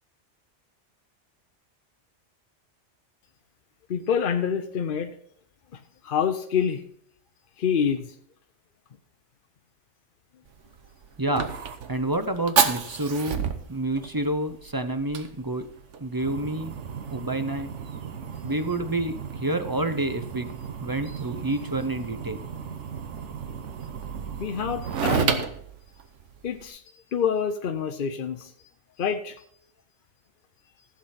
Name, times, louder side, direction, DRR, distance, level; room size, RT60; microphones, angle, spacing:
voice 1, 3.9-5.1 5.7-6.8 7.6-8.1 24.4-25.4 26.4-28.5 29.0-29.4, left 7 dB, 55° left, 7 dB, 0.8 m, -27 dB
Fire, 10.5-26.7, right 7 dB, 85° right, 1.3 m, -32 dB
voice 2, 11.2-11.5 11.9-13.4 13.7-15.7 16.0-16.7 17.1-17.7 18.4-20.5 20.8-22.4, right 2 dB, 25° right, 9 dB, 0.5 m, -28 dB
15.0 x 7.5 x 4.2 m, 0.67 s
omnidirectional pair, 1.2 m